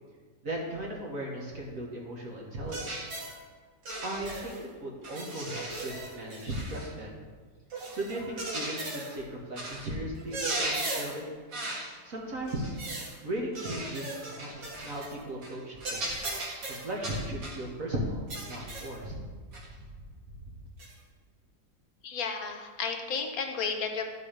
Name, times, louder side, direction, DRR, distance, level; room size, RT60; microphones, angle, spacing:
voice 1, 0.4-3.2 4.0-7.3 7.9-11.3 12.0-12.7 13.2-16.3 16.7-19.1, right 1 dB, 50° right, -2 dB, 1.6 m, -37 dB
sound 1, 2.7-3.4 3.8-4.6 5.0-6.9 7.7-9.2 9.6-9.9 10.2-11.2 11.5-11.9 12.5-13.1 13.5-15.1 15.4-15.6 15.8-17.6 18.3-19.0 19.5-19.7 20.8-20.9, right 2 dB, 80° right, 2.4 m, -36 dB
voice 2, 22.0-24.0, left 5 dB, 60° left, 5 dB, 1.1 m, -33 dB
11.5 x 4.6 x 5.0 m, 1.5 s
omnidirectional pair, 2.0 m